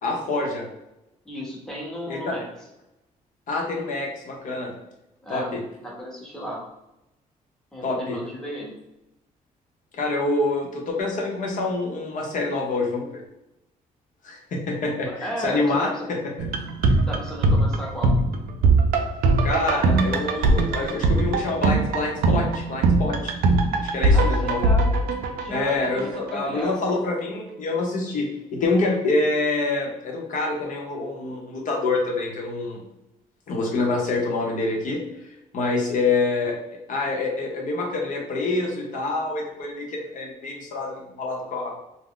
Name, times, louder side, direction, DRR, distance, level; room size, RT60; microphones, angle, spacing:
voice 1, 0.0-0.7 2.1-2.4 3.5-4.7 5.3-5.6 7.8-8.2 10.0-13.2 14.2-16.2 16.9-17.0 19.4-23.3 23.8-24.6 25.5-32.8 33.5-36.5 36.9-41.7, left 3 dB, 60° left, 0 dB, 0.7 m, -26 dB
voice 2, 1.3-2.5 5.2-5.5 5.8-6.6 7.7-8.7 15.0-16.1 17.1-18.1 24.1-24.9 25.4-26.8, equal, 5° left, -3 dB, 0.8 m, -34 dB
sound 1, 16.4-26.3 26.6-26.7, right 2 dB, 85° right, 0.4 m, -21 dB
2.4 x 2.1 x 3.6 m, 0.89 s
cardioid pair, 105°, 15 cm